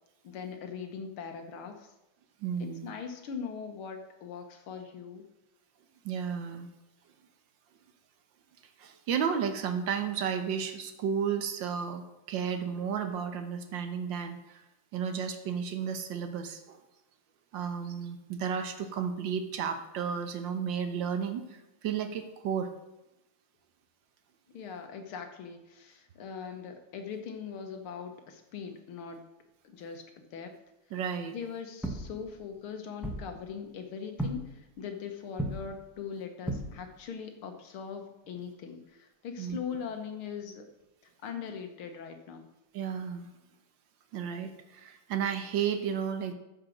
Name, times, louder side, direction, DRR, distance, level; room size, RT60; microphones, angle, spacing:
voice 1, 0.2-1.9 2.6-5.3 24.5-29.2 29.6-30.0 30.3-30.5 31.3-40.7 41.2-42.4, left 6 dB, 80° left, 6 dB, 2.1 m, -41 dB
voice 2, 2.4-2.9 6.0-6.7 8.8-14.6 14.9-16.8 17.5-22.7 30.9-31.4 39.4-39.6 42.7-43.3 44.1-46.3, right 7 dB, 65° right, 7 dB, 1.7 m, -33 dB
sound 1, 31.8-32.6 33.0-33.7 34.2-34.7 35.3-36.0 36.5-37.1 38.2-38.4 40.4-40.5, right 1 dB, ahead, 0.4 m, -36 dB
14.0 x 5.1 x 6.4 m, 0.95 s
omnidirectional pair, 2.3 m